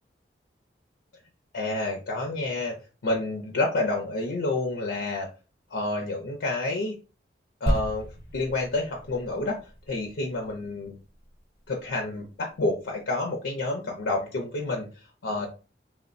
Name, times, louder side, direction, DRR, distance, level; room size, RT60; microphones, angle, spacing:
voice 1, 1.5-2.8 3.0-5.3 5.7-7.0 7.6-8.1 8.3-9.6 9.9-11.0 11.7-15.5, left 2 dB, 90° left, 1 dB, 0.5 m, -29 dB
sound 1, 7.7-11.2 11.9-12.0, equal, 50° left, 0.9 m, -32 dB
3.1 x 2.1 x 2.4 m, 0.33 s
head